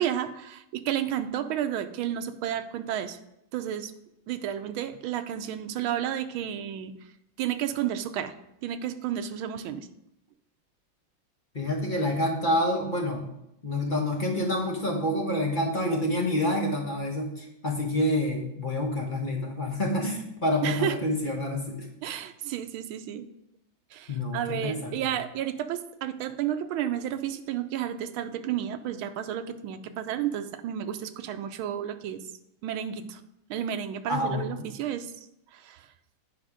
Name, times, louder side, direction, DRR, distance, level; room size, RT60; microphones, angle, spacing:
voice 1, 0.0-3.2 3.5-3.9 4.3-6.9 7.4-8.3 8.6-9.9 20.6-21.0 22.0-23.3 23.9-32.2 32.6-33.2 33.5-35.1 35.5-35.9, right 10 dB, 85° right, 9 dB, 1.5 m, -31 dB
voice 2, 11.5-13.2 13.6-21.9 24.1-25.0 34.1-34.7, left 1 dB, 30° left, 0 dB, 1.0 m, -28 dB
8.9 x 5.1 x 5.0 m, 0.82 s
omnidirectional pair, 2.2 m